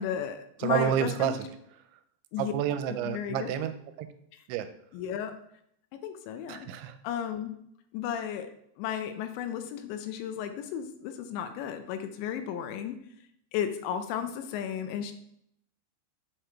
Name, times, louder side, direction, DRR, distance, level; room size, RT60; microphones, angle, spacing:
voice 1, 0.0-1.4 2.3-2.5 3.1-3.5 4.3-4.4 4.9-5.3 6.0-6.7 7.0-7.5 7.9-8.5 8.8-13.0 13.5-15.1, left 9 dB, 80° left, 8 dB, 2.8 m, -34 dB
voice 2, 0.6-1.4 2.4-4.1 4.5-4.7 6.5-7.0, right 10 dB, 85° right, 10 dB, 2.8 m, -29 dB
7.8 x 4.9 x 4.5 m, 0.72 s
omnidirectional pair, 5.3 m